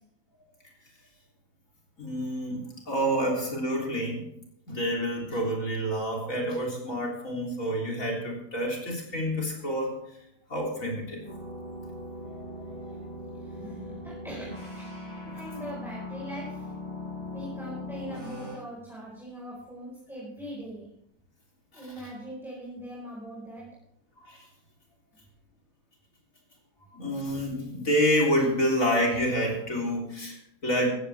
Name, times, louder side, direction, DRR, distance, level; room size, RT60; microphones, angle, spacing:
voice 1, 2.0-2.6 2.9-4.3 4.7-9.9 10.5-11.2 12.3-12.7 15.3-15.4 21.7-21.9 24.2-24.4 26.9-30.9, equal, 50° left, -2 dB, 4.0 m, -28 dB
sound 1, 11.2-18.6, left 1 dB, 25° left, 7.8 m, -39 dB
voice 2, 13.4-16.7 17.3-20.9 21.7-23.6, right 1 dB, ahead, -6 dB, 4.8 m, -41 dB
16.0 x 14.5 x 3.5 m, 0.75 s
omnidirectional pair, 1.8 m